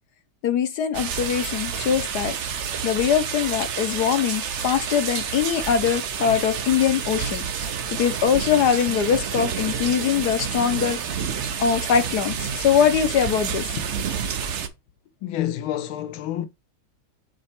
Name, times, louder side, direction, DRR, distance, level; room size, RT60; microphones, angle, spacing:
voice 1, 0.4-2.3 2.8-7.4 7.9-11.0 11.6-13.7, left 8 dB, 60° left, 1.2 m, -22 dB
sound 1, 0.9-14.7, right 7 dB, 60° right, 0.7 m, -29 dB
voice 2, 15.2-16.5, left 12 dB, 90° left, 1.6 m, -28 dB
7.6 x 3.0 x 4.4 m
omnidirectional pair, 2.2 m